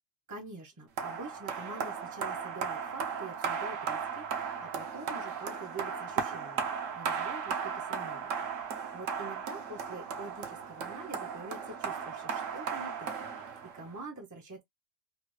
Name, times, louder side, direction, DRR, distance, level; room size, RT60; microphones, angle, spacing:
voice 1, 0.3-8.3 8.6-14.6, right 3 dB, 25° right, 0.4 m, -45 dB
sound 1, 1.0-14.0, right 6 dB, 75° right, 1.0 m, -36 dB
3.2 x 2.2 x 3.1 m
omnidirectional pair, 1.4 m